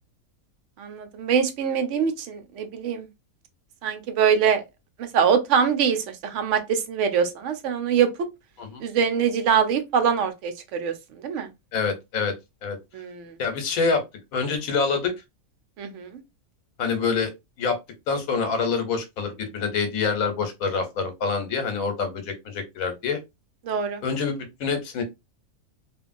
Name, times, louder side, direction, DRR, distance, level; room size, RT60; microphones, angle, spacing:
voice 1, 0.8-3.1 3.8-4.6 5.0-8.1 8.8-10.9 11.2-11.5 12.9-13.4 15.8-16.1 23.7-24.0, right 7 dB, 65° right, 0.8 m, -23 dB
voice 2, 11.7-12.3 12.6-12.8 13.4-14.0 14.3-15.1 16.8-17.3 17.6-17.8 18.1-23.2 24.0-25.0, left 5 dB, 75° left, 1.2 m, -26 dB
2.9 x 2.5 x 2.5 m
omnidirectional pair, 1.5 m